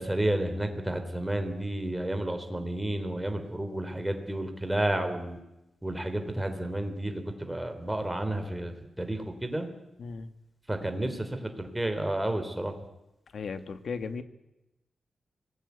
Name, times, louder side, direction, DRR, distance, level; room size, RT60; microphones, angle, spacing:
voice 1, 0.0-5.4 5.8-9.7 10.7-12.7, right 1 dB, 10° right, 7 dB, 3.5 m, -31 dB
voice 2, 10.0-10.3 13.3-14.2, left 5 dB, 60° left, 10 dB, 1.8 m, -36 dB
26.0 x 20.0 x 8.3 m, 0.94 s
wide cardioid pair, 125°, 0 cm